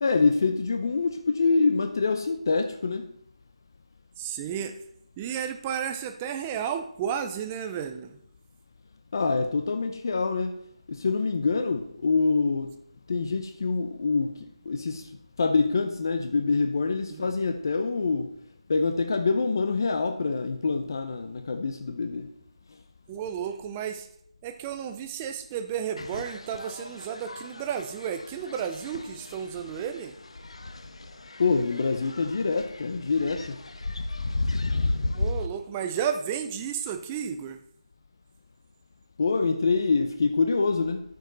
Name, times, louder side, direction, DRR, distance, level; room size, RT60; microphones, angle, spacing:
voice 1, 0.0-3.1 9.1-10.6 10.9-12.7 13.1-15.1 15.4-18.3 18.7-22.3 31.4-33.6 39.2-41.0, left 4 dB, 40° left, 6 dB, 0.6 m, -25 dB
voice 2, 4.2-4.7 5.2-8.2 17.1-17.3 23.1-24.1 24.4-30.1 35.2-37.6, right 8 dB, 10° right, 8 dB, 0.4 m, -32 dB
sound 1, 26.0-35.5, left 2 dB, 75° left, 1.1 m, -34 dB
13.0 x 5.2 x 3.9 m, 0.71 s
figure-of-eight pair, 170°, 3 cm